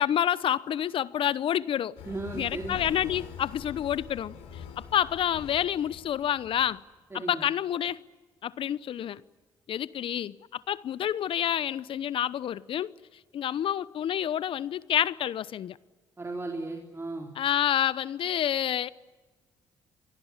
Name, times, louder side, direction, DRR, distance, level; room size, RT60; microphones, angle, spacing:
voice 1, 0.0-2.0 2.3-6.8 7.1-8.0 8.4-9.2 9.7-12.9 13.3-15.8 17.4-18.9, left 10 dB, 60° left, 0.8 m, -28 dB
sound 1, 2.0-6.8, left 6 dB, 80° left, 4.1 m, -44 dB
voice 2, 2.0-2.8 7.1-7.4 16.2-17.3, right 2 dB, 25° right, 4.0 m, -36 dB
29.5 x 24.0 x 7.5 m
hypercardioid pair, 55°, 10 cm